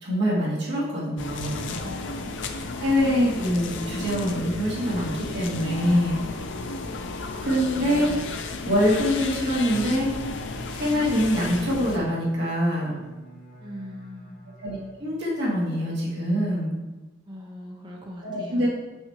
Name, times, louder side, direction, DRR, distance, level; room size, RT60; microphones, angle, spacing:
voice 1, 0.0-1.8 2.8-6.2 7.4-8.1 8.7-10.1 10.7-13.0 14.6-16.7 18.2-18.7, equal, 60° right, -6 dB, 1.9 m, -24 dB
sound 1, 1.2-12.0, left 3 dB, 65° left, 0.5 m, -33 dB
voice 2, 1.8-2.8 13.6-14.6 17.3-18.7, equal, 25° right, -1 dB, 0.8 m, -41 dB
Bowed string instrument, 8.9-15.5, right 1 dB, 45° left, 1.6 m, -46 dB
6.1 x 5.6 x 2.9 m, 1.1 s
head